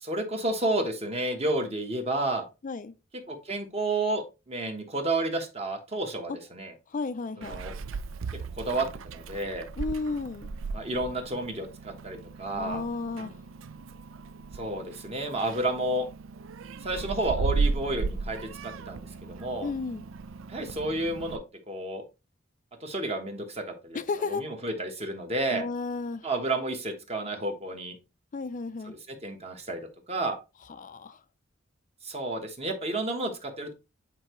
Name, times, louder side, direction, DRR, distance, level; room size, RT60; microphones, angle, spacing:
voice 1, 0.0-2.5 3.3-6.7 7.4-7.7 8.6-9.7 10.7-12.8 14.5-16.1 16.8-19.7 20.5-21.4 21.7-22.0 22.8-24.0 24.3-25.6 26.2-28.0 28.8-29.8 30.1-30.4 32.0-33.7, right 2 dB, 30° right, 1.3 m, -31 dB
voice 2, 2.6-2.9 6.9-7.6 9.8-10.5 12.5-13.4 19.6-20.0 23.9-24.4 25.5-26.3 28.3-29.0 30.7-31.2, left 4 dB, 40° left, 0.4 m, -33 dB
Meow, 7.4-21.4, right 4 dB, 70° right, 0.4 m, -36 dB
8.9 x 4.5 x 3.0 m
head